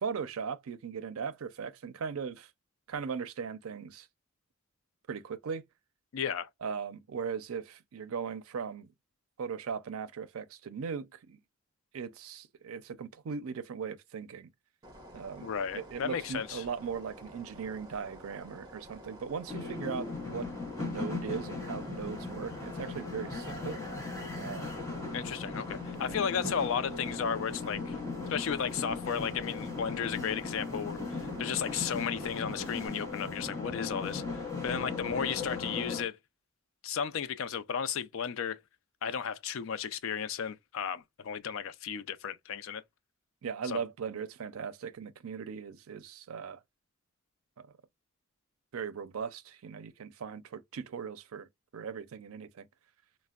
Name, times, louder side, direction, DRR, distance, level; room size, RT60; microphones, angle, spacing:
voice 1, 0.0-2.5 2.9-4.1 5.1-5.6 6.6-8.9 9.4-11.4 11.9-14.5 15.1-20.5 20.8-23.8 24.3-24.8 26.1-26.2 43.4-46.6 47.6-47.7 48.7-51.5 51.7-52.7, right 6 dB, 85° right, 0.4 m, -38 dB
voice 2, 6.1-6.5 15.4-16.6 25.1-28.0 28.3-36.2 36.8-38.6 39.0-42.8 43.6-43.8, left 7 dB, 70° left, 0.4 m, -34 dB
sound 1, 14.8-32.9, equal, 20° right, 0.9 m, -51 dB
sound 2, 19.5-36.0, left 3 dB, 15° left, 0.8 m, -38 dB
4.1 x 2.1 x 2.3 m
head